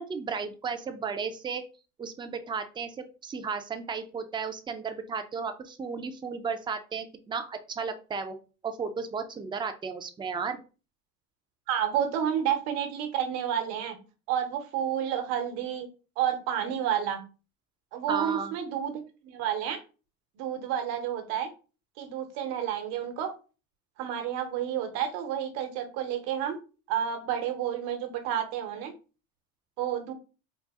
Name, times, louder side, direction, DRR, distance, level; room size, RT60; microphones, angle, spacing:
voice 1, 0.0-1.6 2.0-8.4 8.6-10.6 18.1-18.5, right 5 dB, 15° right, 7 dB, 0.4 m, -34 dB
voice 2, 11.7-14.0 14.3-15.9 16.2-17.2 17.9-19.8 20.4-21.5 22.0-23.3 24.0-26.6 26.9-28.9 29.8-30.1, right 9 dB, 80° right, 6 dB, 1.0 m, -30 dB
4.0 x 2.0 x 3.5 m, 0.34 s
supercardioid pair, 110°, 40 cm